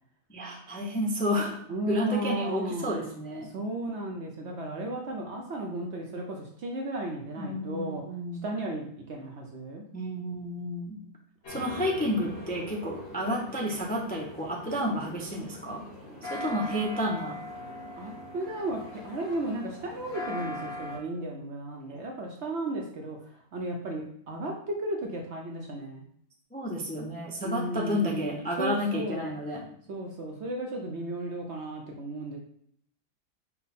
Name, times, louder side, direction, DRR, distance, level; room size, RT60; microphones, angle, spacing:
voice 1, 0.3-1.6 1.9-3.5 7.4-8.5 9.9-11.0 11.5-15.8 16.3-17.4 26.5-29.6, equal, 15° left, -3 dB, 0.3 m, -31 dB
voice 2, 1.7-3.0 3.4-8.0 8.4-9.8 16.0-16.3 18.0-26.1 27.4-29.3 29.9-32.4, right 1 dB, 60° right, 1 dB, 0.7 m, -35 dB
sound 1, 11.4-21.0, left 1 dB, 45° left, 1.3 m, -41 dB
5.6 x 2.2 x 4.1 m, 0.67 s
omnidirectional pair, 1.7 m